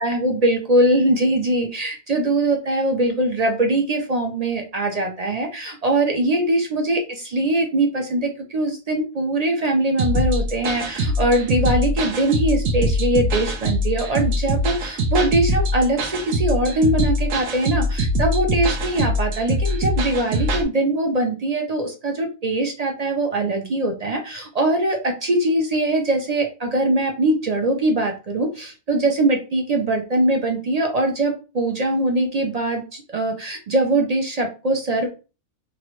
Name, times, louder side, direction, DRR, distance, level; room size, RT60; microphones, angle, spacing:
voice 1, 0.0-35.1, right 1 dB, 50° right, 3 dB, 0.4 m, -22 dB
sound 1, 10.0-20.6, equal, 85° right, 1.1 m, -23 dB
3.1 x 2.5 x 3.0 m, 0.32 s
omnidirectional pair, 1.3 m